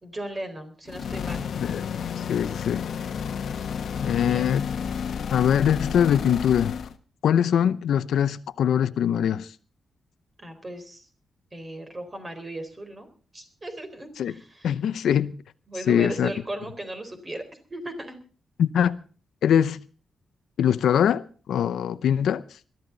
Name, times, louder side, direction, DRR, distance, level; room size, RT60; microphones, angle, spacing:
voice 1, 0.0-1.5 4.0-4.5 10.4-11.1 11.5-13.1 13.3-14.7 15.7-17.4 17.7-18.2, right 1 dB, 25° right, 3.9 m, -36 dB
sound 1, 0.9-7.0, left 7 dB, 65° left, 1.2 m, -31 dB
voice 2, 2.2-2.9 4.0-4.7 5.3-6.7 7.2-9.5 14.2-14.3 14.6-15.3 15.9-16.3 18.6-19.0 19.4-19.8 20.6-21.2 21.5-22.4, left 9 dB, 90° left, 0.7 m, -22 dB
21.5 x 13.5 x 4.0 m
wide cardioid pair, 130°, 0 cm